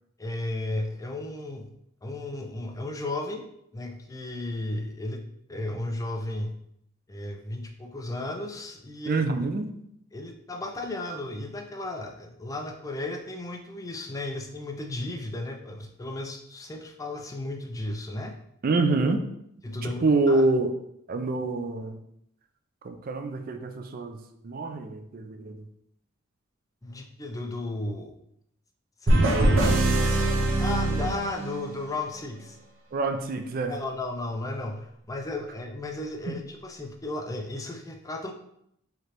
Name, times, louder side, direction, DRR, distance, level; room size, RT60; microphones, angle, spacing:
voice 1, 0.2-1.7 2.0-3.5 3.7-6.6 7.1-9.3 10.1-18.4 19.6-20.4 26.8-28.1 29.0-29.4 30.6-32.6 33.7-38.3, left 2 dB, 15° left, 3 dB, 0.4 m, -34 dB
voice 2, 9.1-9.8 18.6-19.2 19.8-20.7 21.1-22.0 22.8-25.6 29.1-29.8 32.9-33.8 36.3-36.4, right 3 dB, 45° right, 7 dB, 0.4 m, -27 dB
sound 1, 29.1-31.9, right 1 dB, 65° right, 0.8 m, -23 dB
4.8 x 3.2 x 3.0 m, 0.74 s
head